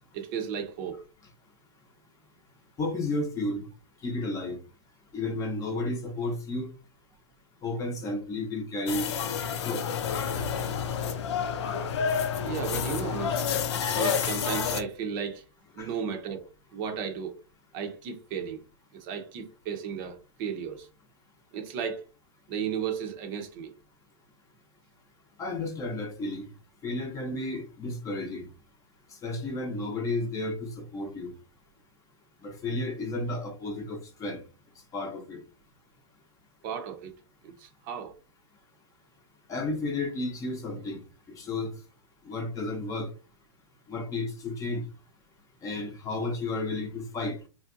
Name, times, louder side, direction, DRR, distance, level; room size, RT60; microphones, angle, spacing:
voice 1, 0.1-1.0 12.4-13.4 13.9-15.4 15.8-17.3 17.7-18.6 18.9-20.9 21.5-22.0 22.5-23.7 36.6-37.1 37.4-38.1, right 7 dB, 45° right, 0.7 m, -34 dB
voice 2, 2.8-3.6 4.0-4.6 5.1-6.7 7.6-9.0 9.6-9.8 15.8-15.9 25.4-26.5 26.8-28.5 29.2-31.3 32.4-34.4 34.9-35.4 39.5-41.0 41.4-41.7 42.2-43.1 43.9-44.8 45.6-47.4, left 2 dB, 20° left, 0.8 m, -32 dB
sound 1, 8.9-14.8, left 7 dB, 65° left, 0.6 m, -29 dB
3.4 x 2.6 x 2.5 m
hypercardioid pair, 125°, 16 cm